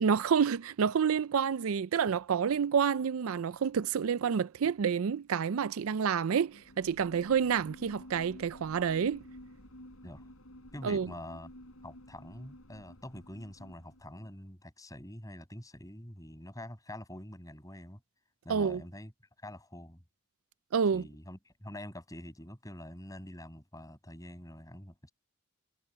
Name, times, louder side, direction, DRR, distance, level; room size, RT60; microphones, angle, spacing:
voice 1, 0.0-9.2 10.8-11.1 18.5-18.8 20.7-21.1, right 7 dB, 75° right, 0.4 m, -28 dB
sound 1, 6.5-14.3, left 1 dB, 75° left, 6.1 m, -52 dB
voice 2, 10.7-11.5 11.8-18.0 18.4-19.1 19.4-20.0 20.9-25.1, left 1 dB, 15° left, 8.0 m, -46 dB
head